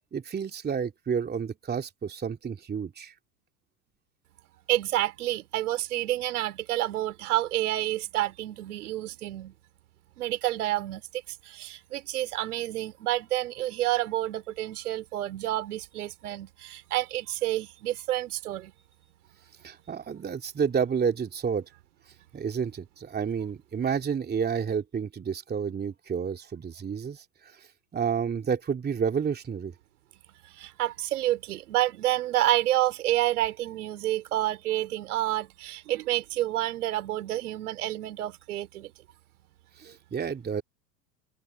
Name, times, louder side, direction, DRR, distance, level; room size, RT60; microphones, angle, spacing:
voice 1, 0.1-3.1 19.6-21.6 22.3-27.2 27.9-29.7 39.8-40.6, right 6 dB, 20° right, 2.9 m, -30 dB
voice 2, 4.7-9.5 10.2-18.7 30.5-38.9, right 14 dB, 70° right, 4.0 m, -29 dB
hypercardioid pair, 90°, 47 cm